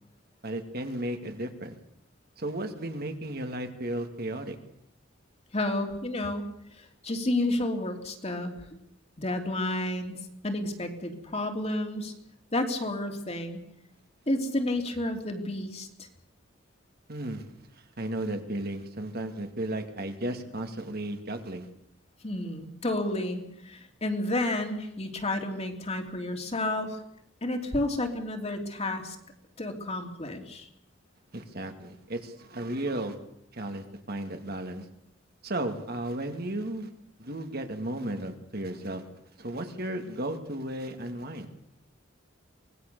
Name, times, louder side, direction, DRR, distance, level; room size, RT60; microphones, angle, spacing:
voice 1, 0.4-1.8 2.4-4.6 17.1-17.5 17.7-21.7 31.3-33.2 33.5-34.8 35.4-36.9 37.2-39.1 39.4-41.5, right 1 dB, 55° right, 6 dB, 2.3 m, -34 dB
voice 2, 5.5-6.5 6.8-8.5 9.2-10.2 10.4-12.1 12.5-13.6 14.3-15.9 22.2-27.0 27.4-29.2 29.6-30.7, left 1 dB, 35° left, 4 dB, 2.8 m, -31 dB
24.5 x 19.5 x 6.8 m, 0.77 s
head